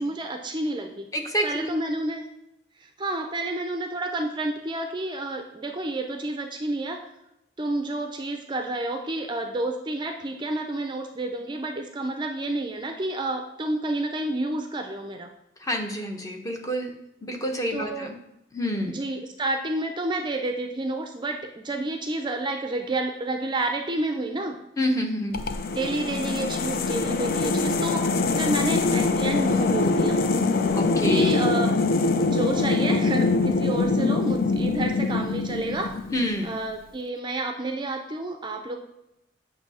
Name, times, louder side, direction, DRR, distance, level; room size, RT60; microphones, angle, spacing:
voice 1, 0.0-1.1 1.4-2.3 2.8-7.0 7.6-15.3 17.7-18.1 18.9-24.6 25.7-28.1 28.3-30.2 31.0-31.7 32.1-36.0 36.4-38.8, right 2 dB, 25° right, 4 dB, 0.4 m, -30 dB
voice 2, 1.1-1.7 15.6-16.9 17.2-18.2 18.5-19.0 24.8-25.4 30.7-31.3 36.1-36.5, equal, 20° left, 3 dB, 0.8 m, -28 dB
sound 1, 25.3-36.4, left 3 dB, 55° left, 0.5 m, -24 dB
7.8 x 2.7 x 5.4 m, 0.85 s
head